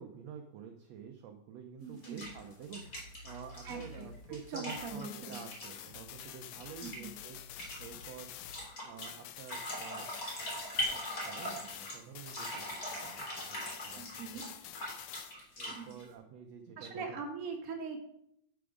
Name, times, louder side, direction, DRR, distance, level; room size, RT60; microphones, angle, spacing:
voice 1, 0.0-7.4 7.8-8.3 8.8-10.1 10.8-14.7 15.6-17.2, right 7 dB, 70° right, 5 dB, 1.7 m, -49 dB
voice 2, 1.8-2.3 3.6-4.1 4.5-5.4 6.8-7.1 13.9-14.4 15.7-15.9 16.8-18.1, right 4 dB, 35° right, 1 dB, 1.7 m, -42 dB
sound 1, 2.0-2.4 2.7-6.3 6.6-7.0 7.4-8.1 8.5-9.1 9.5-12.0 12.2-16.0, left 1 dB, 25° left, 3.3 m, -41 dB
sound 2, 2.2-5.5 5.9-9.2, left 1 dB, 50° left, 1.3 m, -55 dB
sound 3, 4.7-8.7 9.0-15.4, left 13 dB, 80° left, 1.7 m, -48 dB
11.5 x 7.0 x 5.0 m, 0.75 s
omnidirectional pair, 3.8 m